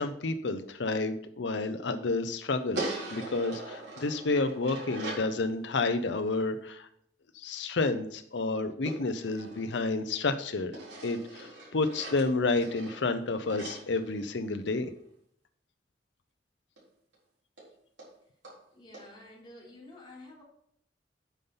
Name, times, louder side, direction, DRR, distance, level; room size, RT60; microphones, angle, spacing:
voice 1, 0.0-2.8 3.1-6.9 7.3-10.7 11.0-14.9, left 3 dB, 85° left, 8 dB, 0.7 m, -30 dB
sound 1, 2.7-5.3 8.9-10.3 10.7-14.8 16.8-16.9 17.1-17.2 17.6-17.7 18.0-18.1 18.4-18.6 18.9-19.1, right 2 dB, 85° right, 4.1 m, -41 dB
voice 2, 18.7-20.4, left 2 dB, 25° left, -4 dB, 3.7 m, -50 dB
9.1 x 5.6 x 5.5 m, 0.69 s
head